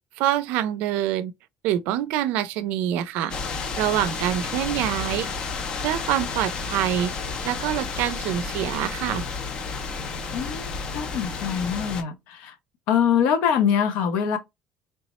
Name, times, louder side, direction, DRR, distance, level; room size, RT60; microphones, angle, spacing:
voice 1, 0.2-1.3 1.6-3.3 3.8-5.3 5.8-7.1 7.4-9.2, right 12 dB, 80° right, 0.4 m, -25 dB
sound 1, 3.3-12.0, left 4 dB, 35° left, 0.4 m, -31 dB
voice 2, 10.3-12.5 12.9-14.4, left 8 dB, 75° left, 0.6 m, -24 dB
3.3 x 2.0 x 4.1 m
cardioid pair, 175°, 3 cm